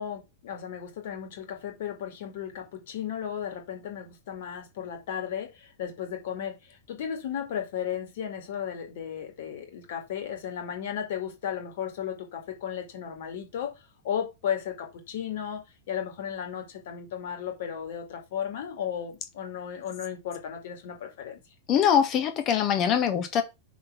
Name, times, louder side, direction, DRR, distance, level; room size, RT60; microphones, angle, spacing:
voice 1, 0.0-13.7 14.0-21.4, left 9 dB, 55° left, 2.4 m, -35 dB
voice 2, 21.7-23.4, left 8 dB, 35° left, 1.6 m, -23 dB
6.2 x 4.2 x 5.7 m
figure-of-eight pair, 90°, 0 cm